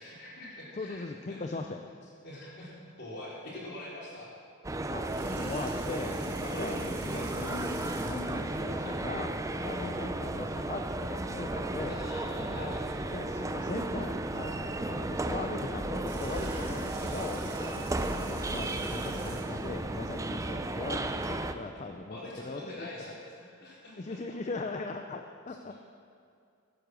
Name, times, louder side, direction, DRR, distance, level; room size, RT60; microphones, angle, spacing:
voice 1, 0.0-1.4 2.2-4.3 6.4-6.8 7.1-7.5 8.8-9.1 11.9-13.0 21.7-24.2, left 1 dB, 55° left, -6 dB, 4.3 m, -45 dB
voice 2, 0.7-1.9 4.9-10.8 11.1-12.0 12.5-12.8 13.1-23.1 24.0-25.7, left 3 dB, 35° left, 4 dB, 0.6 m, -39 dB
sound 1, 4.6-21.5, right 2 dB, 15° right, 0.5 m, -34 dB
Water tap faucet, 5.0-8.4 15.8-19.7, right 3 dB, 50° right, 2.4 m, -47 dB
15.5 x 10.0 x 6.3 m, 2.4 s
head